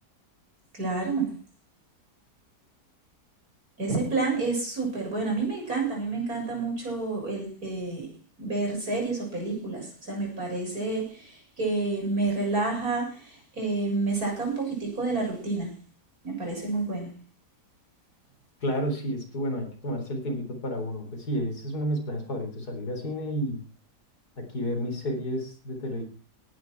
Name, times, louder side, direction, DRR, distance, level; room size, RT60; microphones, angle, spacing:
voice 1, 0.7-1.3 3.8-8.1 8.4-15.7 16.2-17.1, right 3 dB, 60° right, 0 dB, 7.7 m, -29 dB
voice 2, 18.6-23.6 24.4-26.0, equal, 70° left, 4 dB, 4.5 m, -31 dB
18.5 x 11.5 x 4.7 m, 0.37 s
omnidirectional pair, 1.8 m